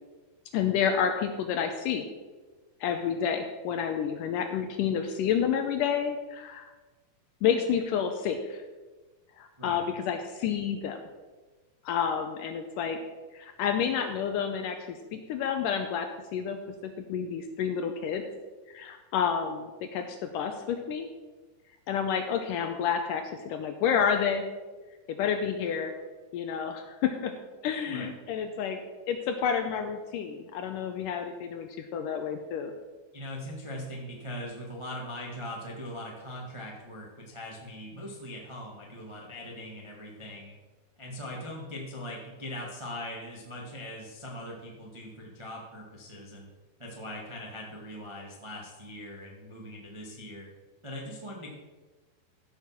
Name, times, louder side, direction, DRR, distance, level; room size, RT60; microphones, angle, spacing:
voice 1, 0.5-2.0 2.8-6.7 7.4-8.6 9.4-11.0 11.9-13.0 13.3-18.2 18.7-21.1 21.9-24.4 25.1-25.9 26.3-27.3 27.6-28.8 29.1-32.7, left 7 dB, 75° left, 6 dB, 2.0 m, -29 dB
voice 2, 33.1-40.5 41.0-46.5 46.8-50.5 50.8-51.5, left 1 dB, 35° right, -2 dB, 0.5 m, -41 dB
14.5 x 6.4 x 5.9 m, 1.3 s
omnidirectional pair, 4.4 m